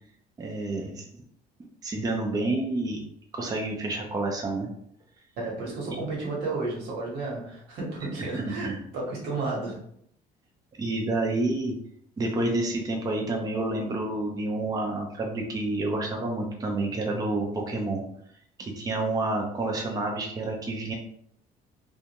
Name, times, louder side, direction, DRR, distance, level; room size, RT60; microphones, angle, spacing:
voice 1, 0.4-1.0 1.8-3.0 3.3-4.7 8.3-8.8 10.8-11.8 12.2-18.0 18.6-20.9, right 2 dB, 20° right, 0 dB, 0.5 m, -29 dB
voice 2, 5.4-9.8, right 3 dB, 80° right, -3 dB, 1.1 m, -32 dB
2.6 x 2.2 x 2.9 m, 0.68 s
cardioid pair, 110°, 17 cm